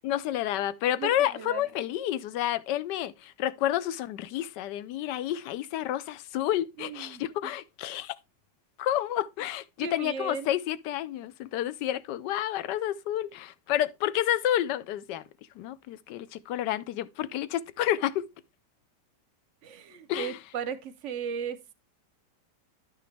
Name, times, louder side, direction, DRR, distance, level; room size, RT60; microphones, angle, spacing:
voice 1, 0.0-8.2 8.8-15.2 15.6-18.3 20.1-20.4, left 12 dB, 80° left, 1.2 m, -30 dB
voice 2, 1.0-1.6 6.8-7.5 9.8-10.6 19.6-21.7, right 7 dB, 60° right, 0.8 m, -36 dB
11.0 x 6.0 x 3.3 m
omnidirectional pair, 1.9 m